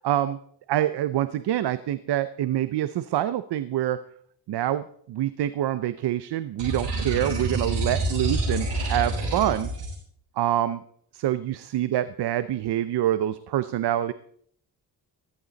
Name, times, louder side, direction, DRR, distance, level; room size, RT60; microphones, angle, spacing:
voice 1, 0.0-0.4 0.7-4.0 4.5-9.7 10.4-10.8 11.1-14.1, right 12 dB, 70° right, 13 dB, 0.7 m, -26 dB
sound 1, 6.6-10.0, right 2 dB, 90° right, 6.8 m, -28 dB
15.0 x 14.0 x 4.0 m, 0.62 s
cardioid pair, 115°, 41 cm